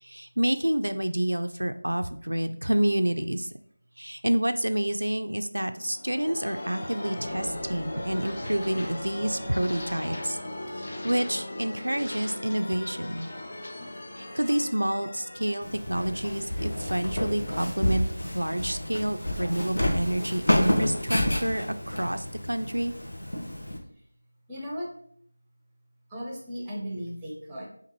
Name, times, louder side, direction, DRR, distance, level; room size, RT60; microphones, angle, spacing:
voice 1, 0.0-3.5 4.0-10.4 10.7-13.3 14.2-18.0 18.3-22.9, right 1 dB, 80° right, 8 dB, 0.3 m, -28 dB
Time Swoosh, 5.6-17.1, left 1 dB, 40° left, 0.6 m, -38 dB
Walk footsteps, 15.6-23.8, left 1 dB, 60° left, 1.0 m, -29 dB
voice 2, 24.5-24.9 26.1-27.7, equal, 5° right, -4 dB, 0.7 m, -36 dB
5.1 x 2.5 x 3.0 m, 0.63 s
figure-of-eight pair, 170°, 0 cm